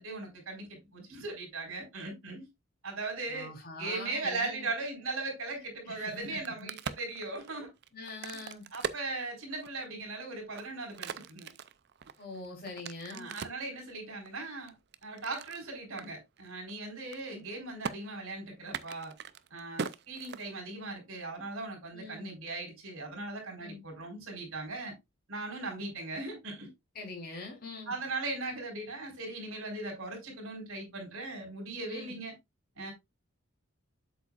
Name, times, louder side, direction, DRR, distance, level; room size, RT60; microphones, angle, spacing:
voice 1, 0.0-2.5 2.8-3.5 3.8-7.7 8.7-11.5 13.1-14.7 15.0-19.1 19.5-24.9 25.3-26.7 27.9-32.3 32.8-32.9, right 3 dB, 85° right, 4.0 m, -38 dB
voice 2, 3.3-4.7 5.8-6.7 7.9-8.7 12.2-13.3 21.9-22.3 23.6-23.8 26.9-27.9 31.9-32.1, left 3 dB, 45° left, 3.5 m, -43 dB
Crack, 6.3-9.9 10.4-13.7 14.3-15.6 16.0-16.1 16.4-16.7 17.0-17.5 17.8-18.0 18.6-20.9, right 6 dB, 50° right, 0.5 m, -41 dB
8.0 x 7.3 x 2.4 m
head